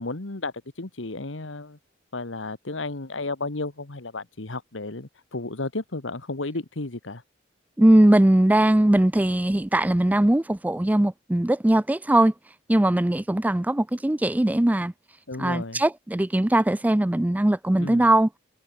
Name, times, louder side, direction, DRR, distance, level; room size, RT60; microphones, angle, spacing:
voice 1, 0.0-1.8 2.1-7.2 15.3-15.8 17.8-18.1, left 2 dB, 90° left, 1.7 m, -33 dB
voice 2, 7.8-12.3 12.7-14.9 15.4-18.3, right 1 dB, 10° right, 0.4 m, -20 dB
head